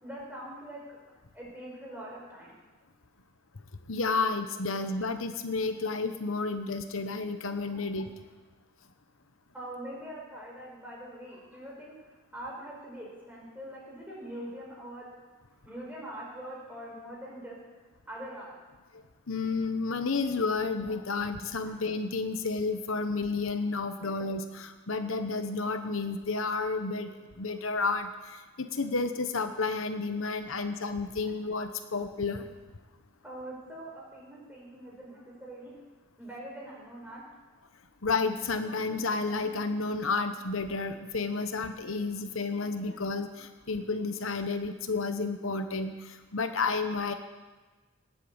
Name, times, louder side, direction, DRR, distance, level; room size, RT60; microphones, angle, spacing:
voice 1, 0.0-1.0 1.3-2.5 9.5-11.9 12.3-15.1 15.6-17.6 18.1-18.5 24.0-24.1 33.2-35.7 36.2-37.2, right 1 dB, 10° right, -4 dB, 4.8 m, -43 dB
voice 2, 3.9-8.1 19.3-32.5 38.0-47.1, left 4 dB, 75° left, 8 dB, 1.0 m, -31 dB
19.5 x 8.4 x 8.0 m, 1.3 s
head